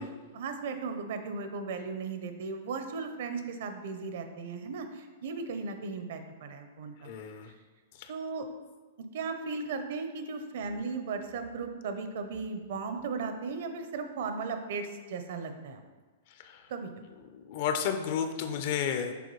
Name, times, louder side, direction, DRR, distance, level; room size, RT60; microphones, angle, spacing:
voice 1, 0.0-7.1 8.1-8.5 9.0-15.8 16.7-16.9, right 4 dB, 60° right, 7 dB, 0.6 m, -36 dB
voice 2, 7.0-7.5 8.0-8.1 16.4-16.6 17.3-19.1, left 8 dB, 45° left, 7 dB, 0.5 m, -32 dB
6.9 x 4.4 x 3.1 m, 1.3 s
supercardioid pair, 160°, 0 cm